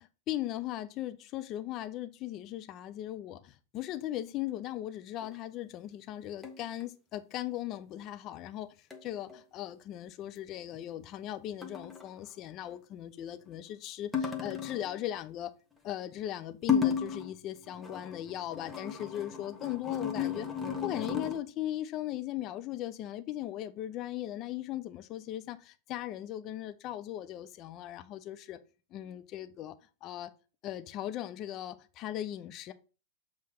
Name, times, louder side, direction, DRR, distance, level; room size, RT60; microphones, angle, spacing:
voice 1, 0.3-8.7 9.0-15.5 15.8-20.5 20.8-28.6 28.9-29.7 30.0-30.3 30.6-32.7, left 13 dB, 35° left, 0.5 m, -38 dB
sound 1, 5.2-5.4 6.4-6.8 8.9-9.4 11.6-12.1 14.1-14.9 16.6-17.4 17.7-21.4, left 7 dB, 5° left, 1.2 m, -34 dB
7.2 x 3.2 x 5.5 m
figure-of-eight pair, 90°, 0 cm